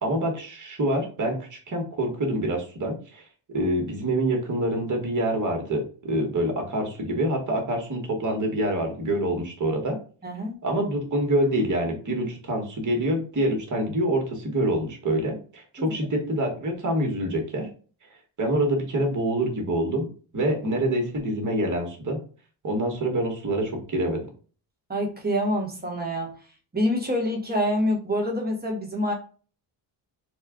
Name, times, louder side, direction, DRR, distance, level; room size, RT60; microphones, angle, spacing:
voice 1, 0.0-3.2 3.5-10.0 10.6-17.7 18.4-20.1 20.3-22.2 22.6-24.2, right 1 dB, 40° right, 1 dB, 1.6 m, -26 dB
voice 2, 10.2-10.6 15.8-15.9 24.9-26.3 26.7-29.1, equal, 20° right, 1 dB, 1.4 m, -26 dB
4.2 x 2.4 x 3.7 m, 0.39 s
cardioid pair, 90°, 47 cm